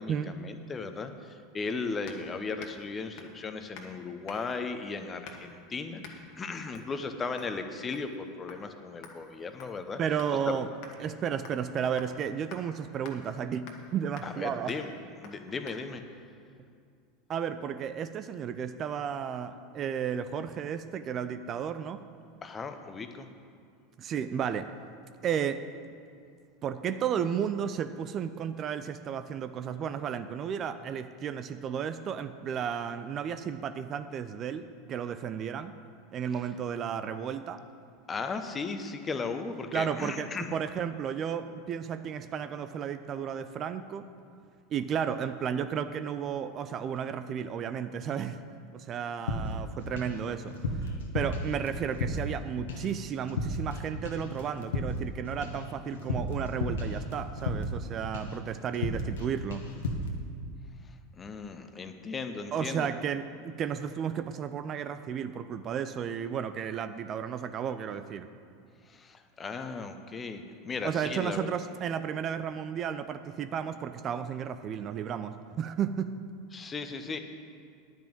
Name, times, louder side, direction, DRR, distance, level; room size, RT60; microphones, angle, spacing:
voice 1, 0.0-10.0 10.5-10.6 14.2-14.9 15.2-16.0 22.4-23.3 38.1-40.5 60.9-62.9 68.8-71.5 76.5-77.2, left 4 dB, 25° left, 7 dB, 1.0 m, -36 dB
sound 1, 2.1-2.3 2.6-2.9 3.2-3.4 3.7-3.9 4.3-4.6 5.2-5.6 6.0-6.2 6.7-6.9 7.4-7.6 7.9-8.2 8.5-8.6 9.0-10.4 10.8-11.0 11.5-11.7 12.0-12.1 12.5-12.6 13.0-13.2 13.7-13.9 14.2-14.4 14.7-14.9 15.2-15.4 15.7-15.8, left 5 dB, 55° left, 1.5 m, -48 dB
voice 2, 10.0-10.7 11.0-14.7 17.3-22.0 24.0-24.7 25.2-25.6 26.6-35.8 36.1-37.6 39.7-44.1 44.7-48.4 48.7-59.7 62.5-68.3 70.8-76.1, right 8 dB, 40° right, 11 dB, 0.5 m, -33 dB
sound 2, 49.3-50.2 50.5-52.4 52.7-53.0 53.3-53.8 54.0-57.9 58.1-58.4 58.7-59.2 59.5-60.1, left 1 dB, 70° left, 1.4 m, -33 dB
10.0 x 6.1 x 8.8 m, 2.3 s
hypercardioid pair, 85°, 0 cm